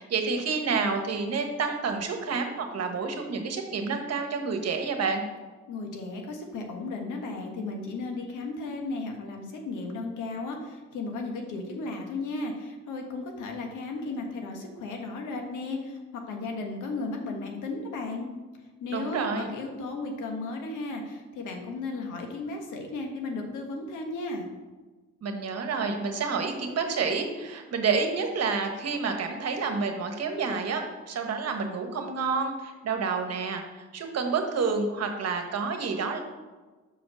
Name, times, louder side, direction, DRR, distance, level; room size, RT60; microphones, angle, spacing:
voice 1, 0.0-5.2 18.9-19.5 25.2-36.2, right 5 dB, 55° right, 5 dB, 1.3 m, -29 dB
voice 2, 5.7-16.0 16.3-18.3 18.8-24.5, left 3 dB, 85° left, 3 dB, 1.4 m, -35 dB
5.7 x 5.2 x 6.2 m, 1.3 s
cardioid pair, 90°, 30 cm